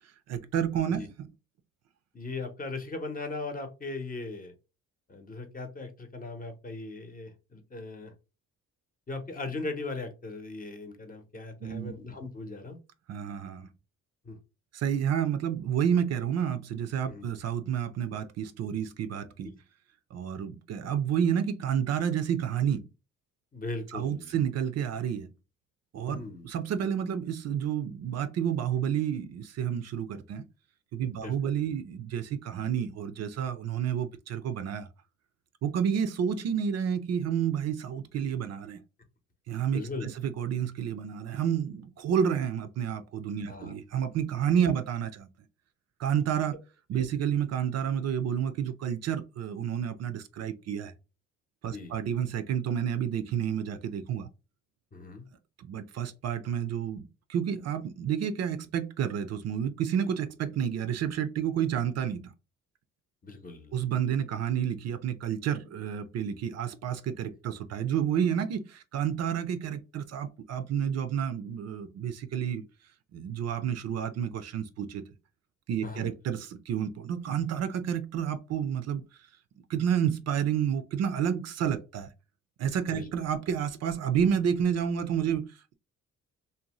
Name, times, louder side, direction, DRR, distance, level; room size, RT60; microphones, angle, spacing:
voice 1, 0.3-1.3 11.6-11.9 13.1-13.7 14.7-19.5 20.1-22.9 23.9-25.3 25.9-30.5 30.9-34.9 35.6-38.8 39.5-45.3 46.0-46.6 46.9-50.9 51.6-54.3 55.6-62.3 63.7-72.6 73.1-75.0 75.7-79.0 79.7-82.1 82.6-85.7, right 8 dB, 60° right, 0.5 m, -30 dB
voice 2, 2.1-4.5 5.1-8.1 9.1-12.8 14.2-14.4 17.1-17.3 23.5-24.3 26.1-26.5 31.1-31.3 39.7-40.1 43.5-43.7 46.9-47.1 51.7-52.0 54.9-55.3 63.2-63.7 75.8-76.1 82.9-83.1, left 3 dB, 30° left, 0.8 m, -38 dB
2.6 x 2.1 x 2.9 m
cardioid pair, 90°, 30 cm